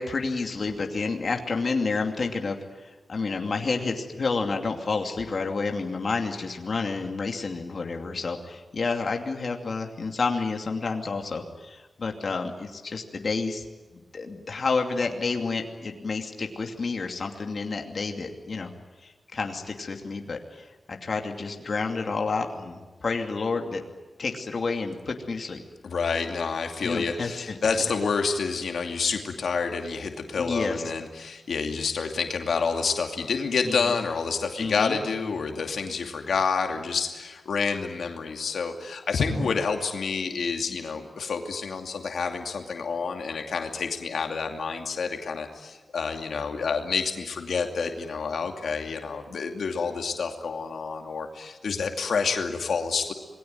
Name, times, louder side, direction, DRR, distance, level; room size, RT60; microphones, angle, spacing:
voice 1, 0.0-13.6 13.9-18.7 19.0-23.8 24.2-25.6 26.8-27.6 30.4-30.8 33.6-33.9 34.6-35.0 39.3-39.5, left 4 dB, 50° left, 3 dB, 2.6 m, -30 dB
voice 2, 25.8-53.1, left 5 dB, 85° left, 4 dB, 2.6 m, -28 dB
27.5 x 20.5 x 9.3 m, 1.3 s
wide cardioid pair, 130°, 0 cm